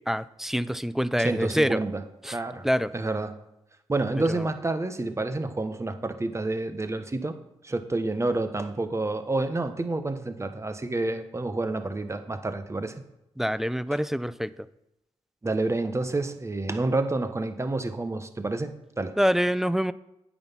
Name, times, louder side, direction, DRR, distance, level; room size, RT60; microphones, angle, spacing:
voice 1, 0.1-1.8 2.3-2.4 2.6-2.9 13.4-14.5 19.2-19.9, equal, 5° right, 16 dB, 0.5 m, -25 dB
voice 2, 1.2-2.7 2.9-3.4 3.9-7.3 7.6-12.9 13.9-14.0 15.4-19.1, right 2 dB, 25° right, 9 dB, 1.2 m, -29 dB
8.7 x 6.2 x 5.6 m, 0.87 s
supercardioid pair, 55°, 11 cm